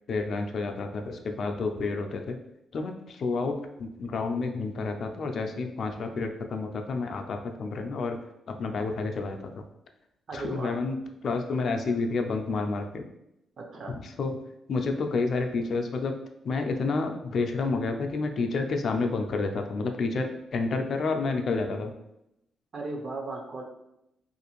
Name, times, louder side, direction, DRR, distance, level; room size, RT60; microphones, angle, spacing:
voice 1, 0.1-2.4 2.7-8.2 8.5-9.6 10.3-13.1 13.9-14.3 14.7-16.1 16.4-21.9, left 3 dB, 55° left, 5 dB, 0.3 m, -30 dB
voice 2, 10.3-10.8 13.6-14.0 22.7-23.6, right 3 dB, 50° right, 1 dB, 0.5 m, -36 dB
2.5 x 2.4 x 2.9 m, 0.82 s
cardioid pair, 110°, 0 cm